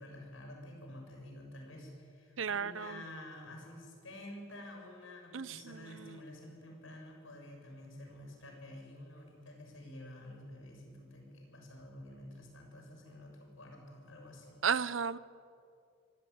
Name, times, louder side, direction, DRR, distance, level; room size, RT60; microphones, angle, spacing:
voice 1, 0.0-14.6, left 1 dB, 85° left, 2 dB, 6.6 m, -50 dB
voice 2, 2.4-3.0 5.3-6.1 14.6-15.2, right 6 dB, 75° right, 17 dB, 0.7 m, -34 dB
24.5 x 17.0 x 9.4 m, 2.4 s
head